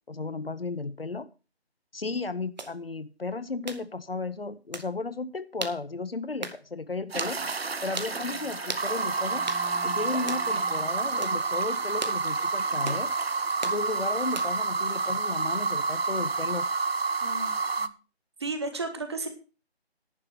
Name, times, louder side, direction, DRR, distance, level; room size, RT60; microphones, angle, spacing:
voice 1, 0.1-1.3 1.9-7.4 7.8-9.4 9.8-13.1 13.6-16.7, left 3 dB, 65° left, 13 dB, 1.0 m, -34 dB
sound 1, 2.6-2.7 3.7-3.8 4.7-4.9 5.6-5.8 6.4-6.6 7.2-7.4 8.0-8.1 8.7-8.9 9.5-9.6 10.3-10.5 11.2-11.4 12.0-12.2 12.9-13.0 13.6-13.8 14.3-14.6, right 3 dB, 45° right, 1.3 m, -36 dB
sound 2, 7.1-17.9, right 4 dB, 70° right, 0.8 m, -29 dB
Bowed string instrument, 7.3-11.4, right 1 dB, 10° left, 1.1 m, -42 dB
voice 2, 17.2-17.9 18.4-19.3, right 3 dB, 25° right, 7 dB, 1.5 m, -34 dB
11.0 x 5.8 x 8.4 m, 0.33 s
figure-of-eight pair, 160°, 32 cm